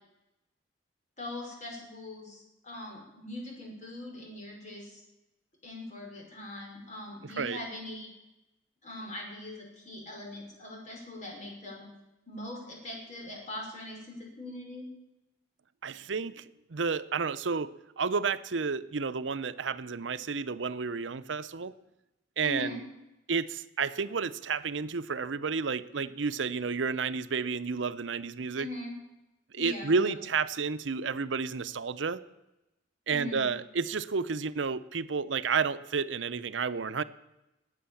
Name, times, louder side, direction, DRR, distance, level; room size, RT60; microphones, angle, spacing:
voice 1, 1.2-5.0 5.6-8.1 8.8-11.9 12.3-14.9 22.4-22.8 28.6-28.9 29.6-30.1 33.1-33.5, left 1 dB, 40° left, 0 dB, 5.4 m, -41 dB
voice 2, 7.2-7.6 15.8-16.4 16.7-21.7 22.4-22.8 23.3-28.7 29.5-32.2 33.1-37.0, right 5 dB, 85° right, 14 dB, 0.7 m, -31 dB
20.5 x 8.6 x 7.1 m, 0.94 s
head